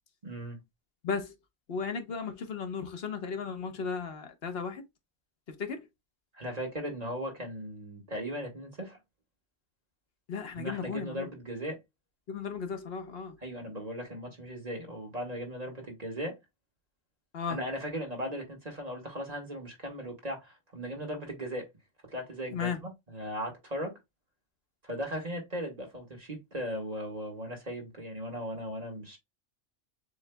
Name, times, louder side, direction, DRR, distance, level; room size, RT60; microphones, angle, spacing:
voice 1, 0.2-0.6 6.3-9.0 10.5-11.8 13.4-16.4 17.5-21.7 22.1-24.0 24.8-29.2, equal, 35° right, 1.7 m, -37 dB
voice 2, 1.0-1.4 1.7-4.8 5.5-5.9 10.3-11.3 12.3-13.4 17.3-17.6 22.5-22.8, left 5 dB, 60° left, 1.1 m, -35 dB
7.1 x 3.1 x 2.2 m
omnidirectional pair, 1.2 m